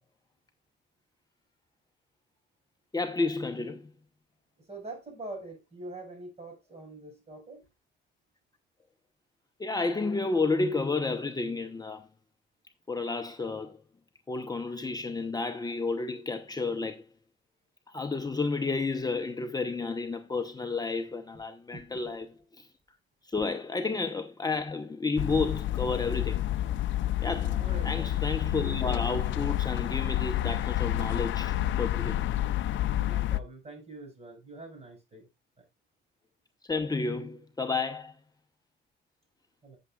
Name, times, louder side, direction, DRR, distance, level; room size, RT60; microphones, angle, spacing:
voice 1, 2.9-3.9 9.6-12.1 12.9-13.8 14.3-17.0 17.9-22.7 23.2-26.4 27.2-32.2 36.7-38.2, left 3 dB, 20° left, 0.9 m, -31 dB
voice 2, 4.6-7.6 21.7-22.1 27.6-28.1 32.2-32.5 32.9-35.3 35.6-35.7 39.6-39.8, right 2 dB, 30° right, 5.9 m, -44 dB
sound 1, 25.2-33.4, left 13 dB, 70° left, 0.5 m, -29 dB
14.5 x 7.0 x 2.4 m
cardioid pair, 90°, 20 cm